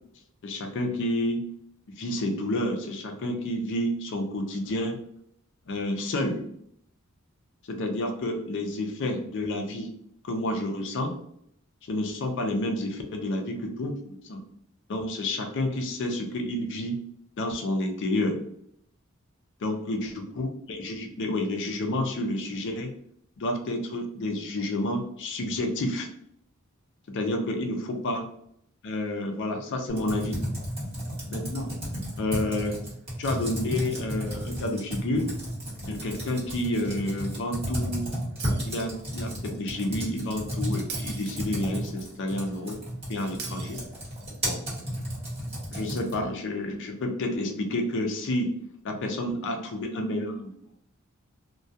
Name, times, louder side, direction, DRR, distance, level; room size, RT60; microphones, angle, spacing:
voice 1, 0.4-1.4 2.0-5.0 5.7-6.4 7.7-9.9 10.2-11.2 11.9-14.4 14.9-17.0 17.4-18.4 19.6-22.9 23.4-26.1 27.1-28.3 28.8-30.4 31.3-31.7 32.2-32.8 33.2-35.3 35.8-38.1 38.7-42.8 43.1-43.8 44.4-44.6 45.7-48.5 48.8-50.5, left 1 dB, 60° left, 4 dB, 0.4 m, -30 dB
Computer keyboard, 29.9-46.3, equal, 30° right, 1.1 m, -33 dB
Shatter, 38.4-39.4 40.9-41.9 43.4-44.4, right 5 dB, 50° right, 0.4 m, -41 dB
2.2 x 2.2 x 2.6 m, 0.70 s
head